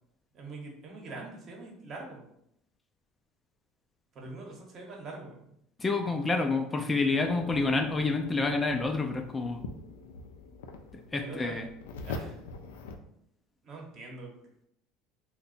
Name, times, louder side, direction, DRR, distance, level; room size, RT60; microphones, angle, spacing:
voice 1, 0.3-2.2 4.1-5.4 11.2-11.5 12.0-12.3 13.6-14.3, right 3 dB, 45° right, 0 dB, 1.0 m, -43 dB
voice 2, 5.8-9.6 11.1-11.7, left 3 dB, 20° left, 4 dB, 0.4 m, -28 dB
sound 1, 7.2-13.0, left 3 dB, 90° left, 0.3 m, -43 dB
2.7 x 2.2 x 4.1 m, 0.76 s
supercardioid pair, 90°, 0 cm